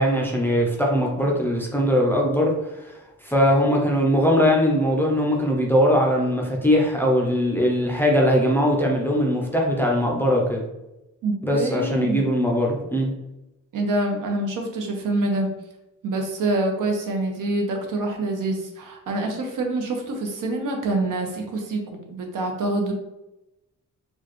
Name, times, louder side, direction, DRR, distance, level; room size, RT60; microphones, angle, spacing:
voice 1, 0.0-10.6 11.4-13.1, equal, 5° left, -2 dB, 0.4 m, -21 dB
voice 2, 11.2-12.2 13.7-15.5 16.0-22.9, right 2 dB, 75° right, 2 dB, 0.8 m, -26 dB
4.4 x 2.3 x 3.0 m, 0.94 s
wide cardioid pair, 175°, 32 cm